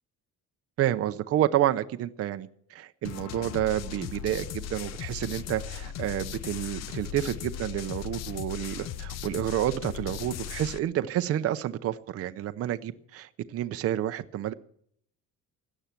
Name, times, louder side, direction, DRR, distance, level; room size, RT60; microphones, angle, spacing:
voice 1, 0.8-14.5, right 12 dB, 45° right, 10 dB, 0.7 m, -29 dB
sound 1, 3.0-10.8, left 10 dB, 50° left, 0.7 m, -37 dB
17.0 x 11.0 x 5.9 m, 0.66 s
cardioid pair, 175°, 34 cm